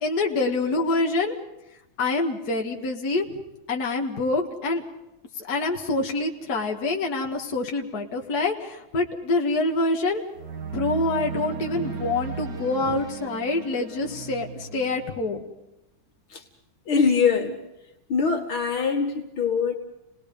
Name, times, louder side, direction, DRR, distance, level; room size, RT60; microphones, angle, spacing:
voice 1, 0.0-1.4 2.0-3.4 3.7-4.8 5.4-10.2 10.7-15.4, left 2 dB, 50° left, 0 dB, 2.2 m, -26 dB
sound 1, 9.7-9.9 10.3-15.2, right 5 dB, 55° right, 2.6 m, -36 dB
voice 2, 16.9-17.6 18.1-19.7, left 5 dB, 80° left, 2 dB, 3.0 m, -23 dB
29.5 x 19.5 x 5.3 m, 0.92 s
omnidirectional pair, 2.2 m